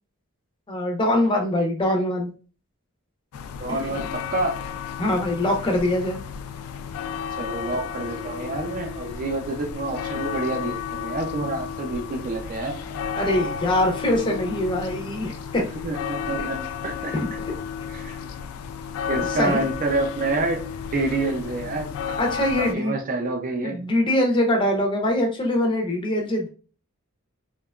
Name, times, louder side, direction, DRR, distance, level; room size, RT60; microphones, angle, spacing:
voice 1, 0.7-2.3 3.7-4.1 5.0-6.2 13.2-15.7 16.4-16.5 19.3-19.7 22.1-23.0 23.6-26.5, left 1 dB, 20° left, 2 dB, 0.5 m, -23 dB
sound 1, 3.3-22.7, left 7 dB, 85° left, 0.3 m, -33 dB
voice 2, 3.6-4.6 7.4-12.8 15.8-17.1 17.9-18.2 19.1-20.6 20.9-21.9 22.7-23.8, right 2 dB, 40° right, 2 dB, 0.4 m, -28 dB
2.8 x 2.2 x 2.2 m, 0.36 s
head